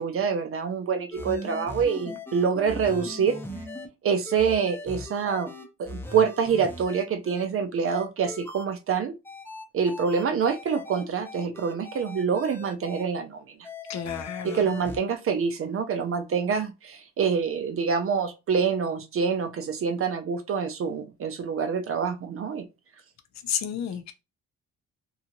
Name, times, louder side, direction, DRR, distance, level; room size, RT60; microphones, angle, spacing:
voice 1, 0.0-3.4 4.0-5.5 5.8-9.1 9.7-13.6 14.4-22.7, right 6 dB, 45° right, 0.5 m, -26 dB
sound 1, 1.1-3.9 4.3-7.4 7.8-8.6 9.2-13.0 13.6-15.0, left 2 dB, 5° left, 0.7 m, -39 dB
voice 2, 13.9-14.7 23.4-24.1, left 8 dB, 65° left, 0.6 m, -31 dB
2.7 x 2.4 x 2.8 m
cardioid pair, 90°, 30 cm